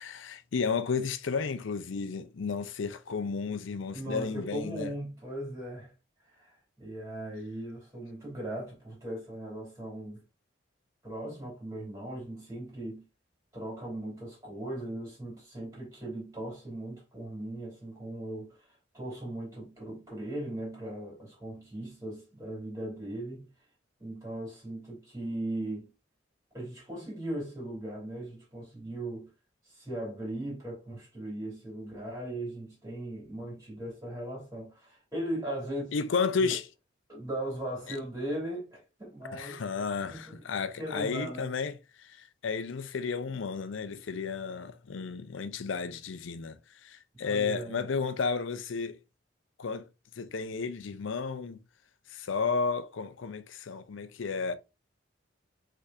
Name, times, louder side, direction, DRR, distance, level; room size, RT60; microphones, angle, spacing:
voice 1, 0.1-4.9 35.9-36.7 37.9-38.0 39.3-49.0 49.6-49.9 50.2-51.6 52.1-54.6, left 5 dB, 85° left, 0.5 m, -33 dB
voice 2, 3.9-5.9 6.2-10.2 11.0-13.0 13.5-23.4 24.0-25.9 26.5-29.3 29.6-35.9 36.4-36.6 37.1-39.6 40.1-40.4 40.8-41.6 47.2-47.8, right 1 dB, 15° right, 2.9 m, -38 dB
5.5 x 3.5 x 2.5 m
head